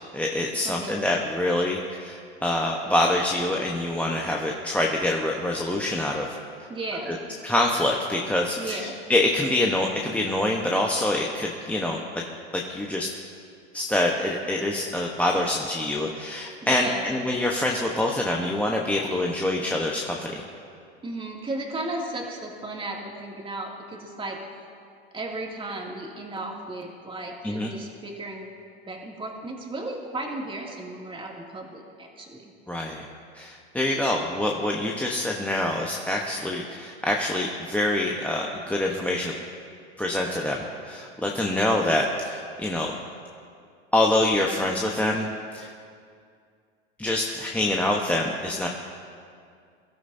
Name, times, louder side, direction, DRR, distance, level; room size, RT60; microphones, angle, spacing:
voice 1, 0.1-6.4 7.1-7.2 7.4-12.0 12.5-13.1 13.7-20.4 27.4-27.7 32.7-33.0 33.3-39.3 40.0-40.6 40.8-42.9 43.9-45.7 47.0-48.7, left 1 dB, 5° left, -1 dB, 1.0 m, -25 dB
voice 2, 0.6-1.0 6.7-7.2 8.6-9.0 16.6-17.1 21.0-24.4 25.1-28.5 28.9-32.4 33.9-34.0, right 2 dB, 15° right, -1 dB, 2.4 m, -35 dB
23.0 x 12.5 x 2.7 m, 2.3 s
hypercardioid pair, 100°, 32 cm